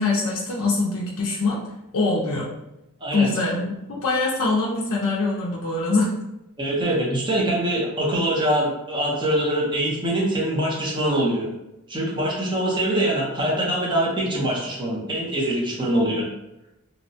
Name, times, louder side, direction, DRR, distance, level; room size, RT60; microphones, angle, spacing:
voice 1, 0.0-1.6 1.9-2.5 3.1-6.1, left 3 dB, 60° left, -4 dB, 0.4 m, -23 dB
voice 2, 6.6-11.5 11.9-16.3, right 1 dB, 20° right, -4 dB, 0.6 m, -23 dB
2.8 x 2.1 x 2.6 m, 0.92 s
head